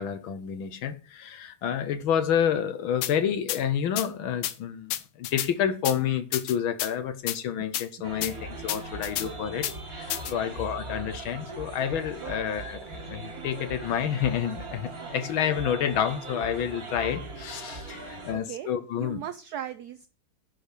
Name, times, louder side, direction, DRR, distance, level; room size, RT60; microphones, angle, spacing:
voice 1, 0.0-19.2, left 8 dB, 75° left, 1.7 m, -29 dB
sound 1, 3.0-3.1 3.5-3.6 4.0-4.1 4.4-4.5 4.9-5.5 5.8-6.0 6.3-6.9 7.3-7.4 7.7-7.8 8.2-8.3 8.7-9.3 9.6-9.7 10.1-10.3, left 13 dB, 90° left, 1.7 m, -30 dB
sound 2, 8.0-18.3, right 2 dB, 45° right, 2.7 m, -39 dB
voice 2, 18.3-18.7 19.0-20.1, right 11 dB, 65° right, 1.0 m, -38 dB
10.5 x 5.1 x 6.6 m
omnidirectional pair, 2.3 m